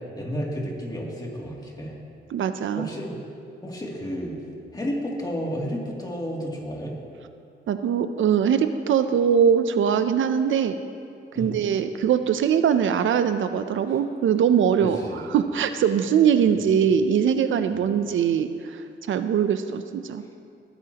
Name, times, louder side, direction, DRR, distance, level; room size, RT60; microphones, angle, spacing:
voice 1, 0.1-2.0 2.8-3.1 3.6-4.4 4.7-6.9 11.3-11.6 14.8-15.2 17.7-17.9, equal, 20° left, -3 dB, 2.6 m, -31 dB
voice 2, 2.3-2.9 7.7-10.8 11.4-20.2, right 8 dB, 75° right, 10 dB, 0.6 m, -22 dB
20.5 x 10.0 x 2.9 m, 2.5 s
cardioid pair, 95°, 20 cm